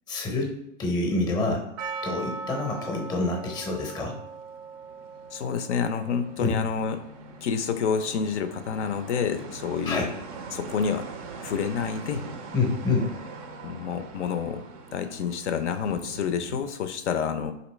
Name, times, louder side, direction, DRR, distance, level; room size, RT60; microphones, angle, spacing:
voice 1, 0.1-0.5 0.8-1.6 2.0-4.1 6.4-6.6 9.9-10.1 12.5-13.1, left 3 dB, 10° left, 1 dB, 0.6 m, -27 dB
Percussion, 1.8-6.7, right 4 dB, 85° right, 0.5 m, -39 dB
sound 1, 4.0-16.6, right 3 dB, 35° right, 0.4 m, -43 dB
voice 2, 5.3-7.0 7.4-10.1 10.5-11.1 11.4-12.2 13.6-14.6 14.9-17.5, left 6 dB, 70° left, 9 dB, 0.5 m, -28 dB
3.9 x 2.8 x 3.1 m, 0.82 s
hypercardioid pair, 130°, 37 cm